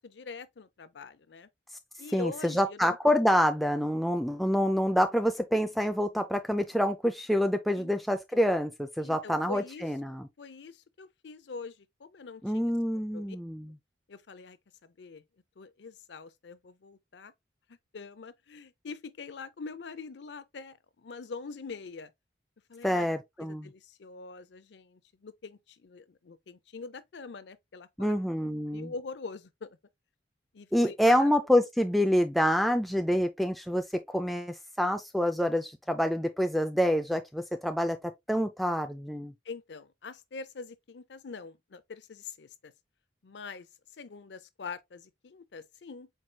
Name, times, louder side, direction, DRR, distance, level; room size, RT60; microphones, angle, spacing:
voice 1, 0.0-1.5 2.0-3.0 7.8-7.9 8.3-8.4 9.0-9.9 10.4-13.4 14.1-14.6 14.8-15.2 15.6-17.3 17.9-22.1 22.7-23.1 23.4-28.1 28.4-29.7 30.5-31.3 31.6-31.7 39.5-42.7 43.2-43.7 44.0-46.1, left 4 dB, 70° left, 0.5 m, -44 dB
voice 2, 2.1-10.3 12.4-13.7 22.8-23.7 28.0-28.9 30.7-39.3, equal, ahead, 0.3 m, -27 dB
4.6 x 4.4 x 2.2 m
head